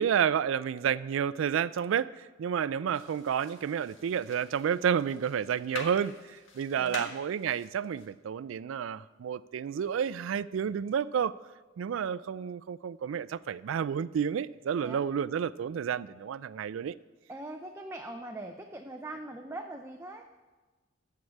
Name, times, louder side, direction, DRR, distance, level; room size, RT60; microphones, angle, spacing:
voice 1, 0.0-11.3 11.8-17.0, right 8 dB, 80° right, 18 dB, 0.3 m, -30 dB
sound 1, 2.9-8.1, left 3 dB, 80° left, 1.6 m, -46 dB
voice 2, 6.8-7.1 14.8-15.1 17.3-20.3, right 2 dB, 15° right, 4 dB, 0.5 m, -41 dB
14.5 x 4.8 x 8.6 m, 1.3 s
head